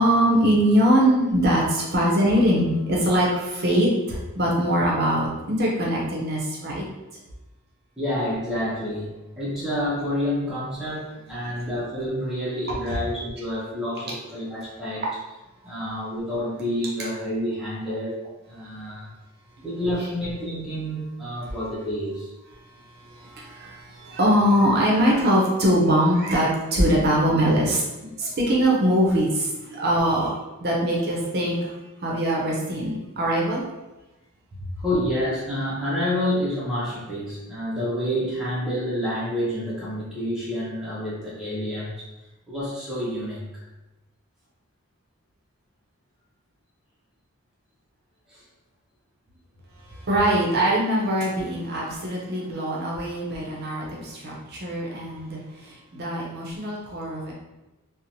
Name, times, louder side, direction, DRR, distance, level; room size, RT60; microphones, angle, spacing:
voice 1, 0.0-6.8 11.5-11.6 12.9-13.0 15.0-15.1 19.6-19.7 20.0-20.1 22.5-30.3 30.6-31.7 32.0-33.6 34.6-34.7 49.8-57.3, equal, 45° right, -3 dB, 0.5 m, -22 dB
voice 2, 8.0-15.0 15.6-18.2 18.5-19.1 19.6-22.3 29.7-29.8 34.8-42.1 42.5-43.6 48.3-48.4, equal, 5° right, -8 dB, 0.5 m, -28 dB
2.9 x 2.0 x 2.6 m, 1.0 s
head